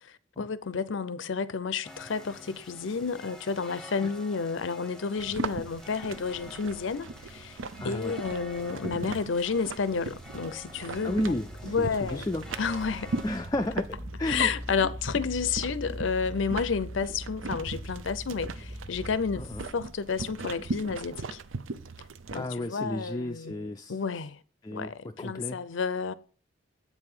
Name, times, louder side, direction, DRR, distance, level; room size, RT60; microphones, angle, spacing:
voice 1, 0.0-7.6 7.8-11.3 11.6-12.3 12.6-13.2 14.3-19.5 19.7-21.4 22.3-24.4 24.7-26.1, left 5 dB, 75° left, 0.6 m, -31 dB
sound 1, 1.8-13.4, left 1 dB, 5° left, 0.8 m, -48 dB
sound 2, 5.2-22.5, right 3 dB, 80° right, 0.6 m, -39 dB
voice 2, 7.8-8.1 11.0-12.5 13.2-14.5 19.4-19.6 22.3-24.0 24.6-25.6, left 1 dB, 20° left, 0.4 m, -33 dB
sound 3, 11.1-19.7, equal, 45° right, 1.3 m, -41 dB
8.3 x 4.8 x 5.5 m
head